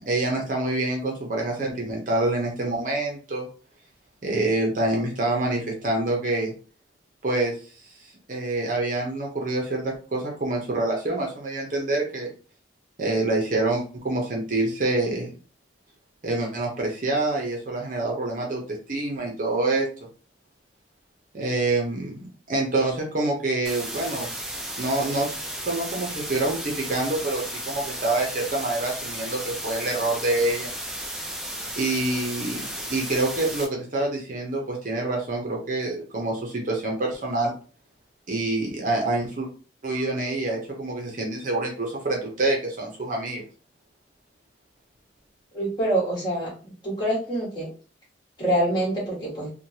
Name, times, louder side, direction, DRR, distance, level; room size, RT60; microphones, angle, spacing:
voice 1, 0.1-3.5 4.2-6.5 7.2-7.5 8.3-12.3 13.0-15.3 16.2-19.9 21.3-24.3 24.8-25.3 25.7-30.7 31.8-37.5 38.3-39.5 39.8-43.4, right 2 dB, 40° right, 0 dB, 0.7 m, -26 dB
sound 1, 23.6-33.6, right 1 dB, 5° right, 0.3 m, -34 dB
voice 2, 45.5-46.5 46.8-47.7 48.4-49.5, right 1 dB, 25° left, -6 dB, 1.4 m, -25 dB
3.1 x 2.2 x 2.7 m, 0.39 s
head